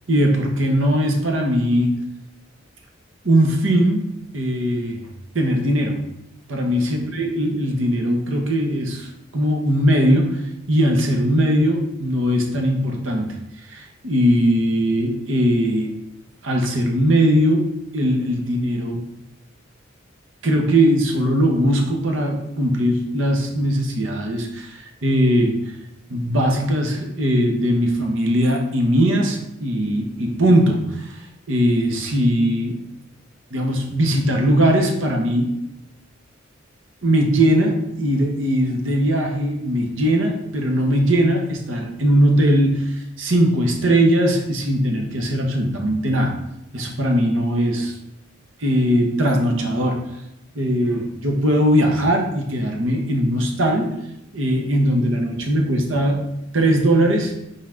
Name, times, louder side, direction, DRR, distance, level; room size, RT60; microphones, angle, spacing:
voice 1, 0.1-2.0 3.2-4.1 4.3-5.0 5.3-6.0 6.5-13.3 13.7-15.9 16.4-17.7 17.9-19.0 20.4-25.6 26.1-31.2 31.5-32.8 33.5-35.5 37.0-46.3 46.7-47.9 48.6-50.1 50.5-53.9 54.3-57.3, equal, 90° right, 2 dB, 1.3 m, -20 dB
5.9 x 4.2 x 5.2 m, 0.83 s
head